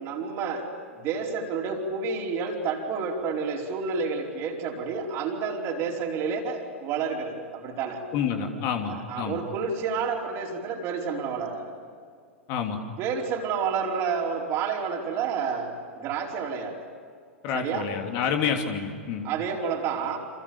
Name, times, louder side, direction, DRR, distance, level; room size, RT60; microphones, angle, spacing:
voice 1, 0.0-8.0 8.9-11.7 13.0-16.8 17.5-17.9 19.2-20.2, right 5 dB, 35° right, 1 dB, 4.7 m, -30 dB
voice 2, 8.1-9.4 12.5-12.8 17.4-19.3, left 7 dB, 40° left, 4 dB, 3.1 m, -28 dB
29.0 x 28.0 x 7.2 m, 2.1 s
figure-of-eight pair, 95°, 7 cm